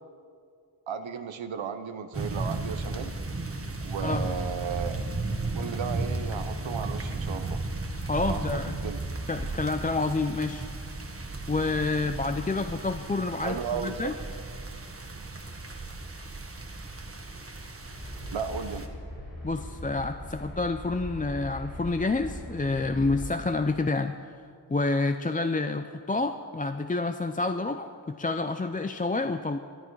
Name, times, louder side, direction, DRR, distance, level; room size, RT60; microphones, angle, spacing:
voice 1, 0.9-3.1 3.8-5.0 5.5-7.6 8.3-9.0 13.4-14.1 18.3-18.9, right 6 dB, 85° right, 8 dB, 0.8 m, -35 dB
sound 1, 2.1-18.9, right 2 dB, 30° right, 1.5 m, -35 dB
voice 2, 8.0-8.8 9.3-10.7 11.5-14.1 19.4-24.2 24.7-29.6, left 3 dB, 20° left, 8 dB, 0.5 m, -28 dB
sound 2, 17.9-23.2, left 1 dB, 85° left, 4.3 m, -40 dB
21.5 x 9.9 x 4.7 m, 2.2 s
cardioid pair, 60°, 45 cm